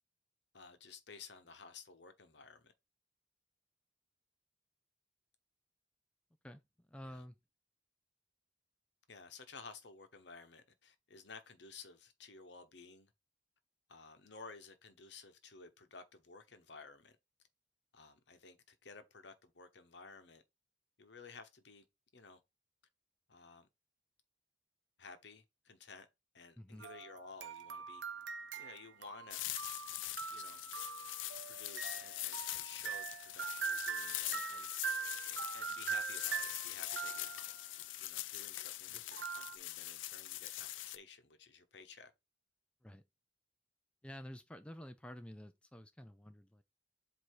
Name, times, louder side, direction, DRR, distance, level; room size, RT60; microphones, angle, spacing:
voice 1, 0.5-2.7 7.0-7.2 9.1-13.1 13.9-17.2 17.9-20.4 21.0-21.8 22.1-22.4 23.3-23.7 25.0-26.1 26.3-28.0 28.6-29.4 30.3-30.6 31.4-34.7 35.3-37.3 38.0-42.1, left 4 dB, 65° left, 1.0 m, -54 dB
voice 2, 6.9-7.3 26.6-26.8 38.9-39.0 42.8-43.0 44.0-46.6, equal, 5° left, 0.4 m, -50 dB
sound 1, 26.8-37.7 39.1-39.6, right 7 dB, 70° right, 0.6 m, -43 dB
sound 2, 29.3-41.0, left 15 dB, 90° left, 0.4 m, -43 dB
7.9 x 2.7 x 4.6 m
head